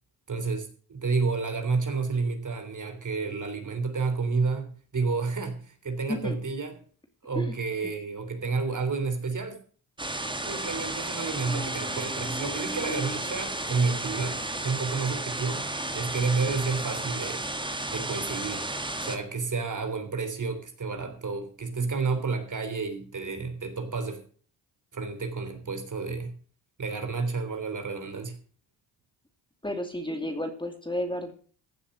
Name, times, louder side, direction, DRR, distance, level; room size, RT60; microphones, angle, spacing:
voice 1, 0.3-6.7 7.2-9.6 10.5-15.7 15.9-17.5 17.9-18.7 19.0-24.2 24.9-26.3 26.8-28.4, right 4 dB, 40° right, 3.5 m, -30 dB
sound 1, 10.0-19.2, right 2 dB, 10° right, 1.7 m, -33 dB
voice 2, 11.1-13.2 29.6-31.3, left 1 dB, 10° left, 2.6 m, -34 dB
15.5 x 7.3 x 6.6 m
supercardioid pair, 65°, 46 cm